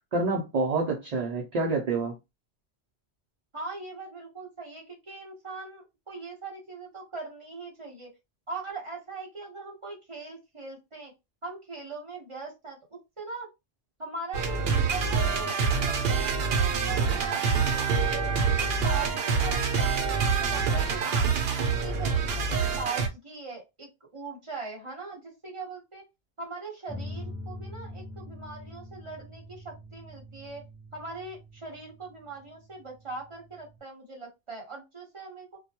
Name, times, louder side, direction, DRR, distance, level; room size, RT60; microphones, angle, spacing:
voice 1, 0.1-2.1, right 3 dB, 50° right, 0.6 m, -27 dB
voice 2, 3.5-8.1 8.5-11.1 11.4-13.5 14.0-18.3 18.6-21.3 21.6-26.0 26.4-30.6 30.9-35.6, right 4 dB, 30° right, 1.0 m, -40 dB
sound 1, 14.3-23.1, right 5 dB, 75° right, 0.8 m, -26 dB
sound 2, 26.9-33.8, left 1 dB, 5° right, 0.6 m, -44 dB
2.2 x 2.2 x 2.8 m
omnidirectional pair, 1.0 m